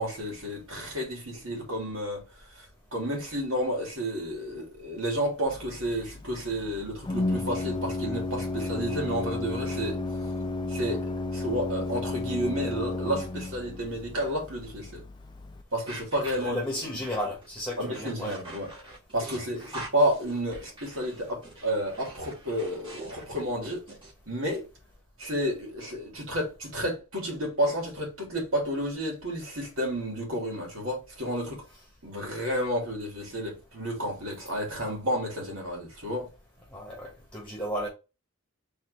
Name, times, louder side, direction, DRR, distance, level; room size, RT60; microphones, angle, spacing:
voice 1, 0.0-2.2 2.5-2.7 2.9-10.0 10.7-11.0 11.3-15.0 15.7-16.6 17.8-18.7 19.1-23.8 24.3-24.6 25.2-31.6 32.0-36.3, equal, 70° right, 2.9 m, -31 dB
Organ, 5.5-15.6, left 2 dB, 20° left, 0.4 m, -33 dB
sound 1, 15.9-24.1, right 2 dB, 25° right, 2.3 m, -44 dB
voice 2, 16.4-18.4 36.7-37.9, equal, 5° left, 1.4 m, -33 dB
4.3 x 3.5 x 3.3 m
head